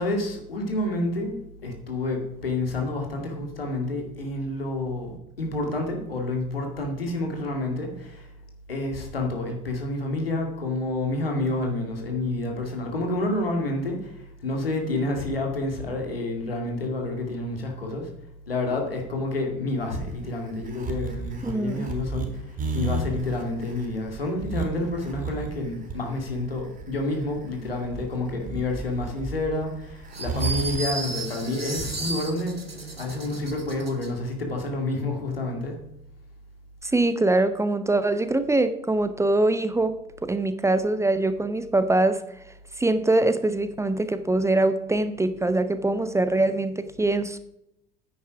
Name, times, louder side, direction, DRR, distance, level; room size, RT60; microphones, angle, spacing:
voice 1, 0.0-1.4 1.6-8.3 8.7-18.1 18.5-32.6 33.0-35.8, left 2 dB, 80° left, 2.3 m, -29 dB
sound 1, 19.8-30.8, right 3 dB, 30° right, 3.4 m, -32 dB
voice 2, 21.4-21.9 36.8-42.2 42.8-47.4, right 2 dB, 10° right, 0.7 m, -23 dB
sound 2, 30.1-34.1, right 3 dB, 90° right, 1.2 m, -34 dB
9.7 x 9.4 x 5.0 m
figure-of-eight pair, 65°, 29 cm